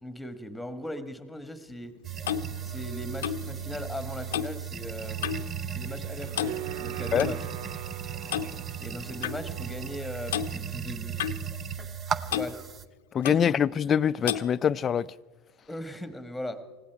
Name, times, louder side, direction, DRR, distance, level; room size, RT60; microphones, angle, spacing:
voice 1, 0.0-1.9 2.6-5.2 5.7-7.4 8.8-11.3 12.3-12.6 13.3-13.5 15.7-16.6, left 1 dB, 5° left, 1.6 m, -38 dB
Clock, 1.7-5.6 5.8-6.1 6.3-7.4 8.3-8.5 9.2-9.4 10.3-10.5 11.2-12.0 12.3-12.5 13.2-13.5 14.2-14.5, left 11 dB, 85° left, 0.6 m, -33 dB
sound 1, 2.0-12.8, right 8 dB, 35° right, 0.7 m, -36 dB
sound 2, 5.0-10.6, right 13 dB, 70° right, 0.4 m, -43 dB
voice 2, 13.1-15.1, left 8 dB, 35° left, 0.4 m, -24 dB
19.0 x 16.0 x 4.7 m
hypercardioid pair, 95°, 0 cm